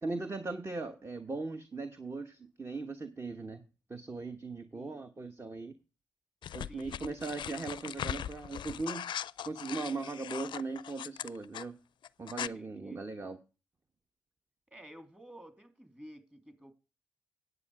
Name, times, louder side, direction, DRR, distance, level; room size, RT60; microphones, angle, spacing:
voice 1, 0.0-3.6 3.9-5.7 6.5-9.1 9.4-11.8 12.2-13.4, right 3 dB, 30° right, 1.2 m, -39 dB
voice 2, 4.7-5.1 6.6-7.0 12.4-13.0 14.7-16.7, equal, 15° right, 3.1 m, -52 dB
sound 1, 6.4-11.7 12.0-12.5, left 10 dB, 65° left, 0.4 m, -40 dB
9.7 x 8.0 x 4.8 m
hypercardioid pair, 45°, 9 cm